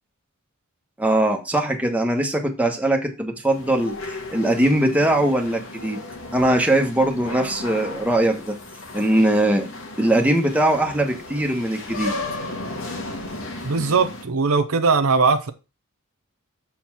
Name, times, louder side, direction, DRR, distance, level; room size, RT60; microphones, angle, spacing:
voice 1, 1.0-6.0 6.3-8.6 8.9-9.7 10.0-12.1, right 1 dB, 5° right, 1.3 m, -21 dB
sound 1, 3.5-14.2, left 2 dB, 65° left, 1.8 m, -35 dB
voice 2, 13.6-15.5, right 4 dB, 70° right, 0.7 m, -20 dB
7.0 x 4.3 x 6.0 m
head